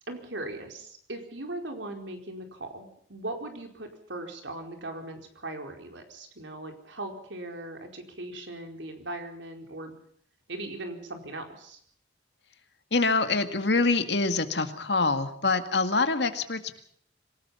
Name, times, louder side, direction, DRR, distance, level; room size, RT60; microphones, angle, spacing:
voice 1, 0.1-9.9 10.5-11.8, right 2 dB, 90° right, 4 dB, 4.6 m, -39 dB
voice 2, 12.9-16.8, left 3 dB, 70° left, 8 dB, 2.1 m, -25 dB
26.0 x 18.5 x 5.7 m, 0.62 s
head